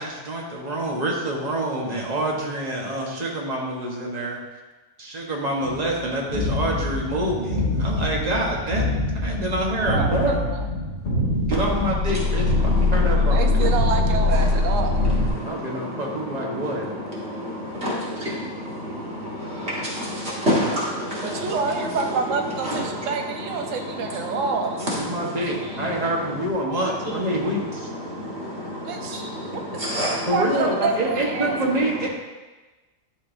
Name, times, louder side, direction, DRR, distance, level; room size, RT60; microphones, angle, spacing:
voice 1, 0.0-4.4 5.0-8.8 9.2-10.4 11.5-12.5 12.9-13.6 15.4-16.9 25.0-27.9 30.3-32.1, right 1 dB, 30° right, -2 dB, 1.2 m, -26 dB
sound 1, 5.6-15.3, left 2 dB, 35° left, 1.6 m, -23 dB
voice 2, 9.8-10.7 13.3-15.0 21.2-24.8 28.8-29.2 29.5-29.6 30.1-31.7, right 4 dB, 70° right, 4 dB, 1.1 m, -27 dB
voice 3, 12.1-13.7 14.4-22.1 22.6-24.4 24.8-26.1 27.0-27.1 27.9-30.3, equal, 50° right, -7 dB, 1.9 m, -30 dB
11.5 x 5.3 x 2.7 m, 1.2 s
omnidirectional pair, 1.4 m